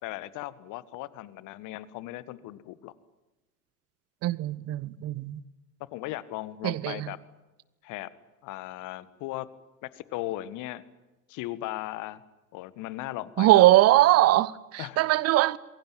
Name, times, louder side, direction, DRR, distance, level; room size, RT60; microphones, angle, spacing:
voice 1, 0.0-2.9 5.9-7.2 7.8-8.1 8.4-9.5 9.8-10.8 11.3-12.2 12.5-13.7 14.8-15.1, left 16 dB, 40° left, 1.7 m, -37 dB
voice 2, 4.2-5.4 6.6-7.1 13.4-15.6, right 16 dB, 35° right, 1.0 m, -21 dB
27.5 x 22.5 x 9.0 m
figure-of-eight pair, 80°, 45 cm